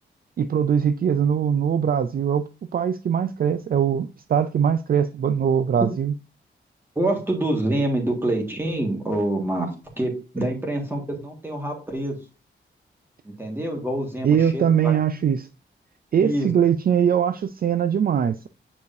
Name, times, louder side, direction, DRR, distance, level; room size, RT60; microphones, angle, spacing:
voice 1, 0.4-6.1 14.2-15.5 16.1-18.5, right 8 dB, 50° right, 0.4 m, -21 dB
voice 2, 6.9-12.2 13.2-15.0 16.2-16.5, right 1 dB, 10° right, 1.8 m, -26 dB
9.4 x 4.9 x 2.6 m
wide cardioid pair, 170°, 20 cm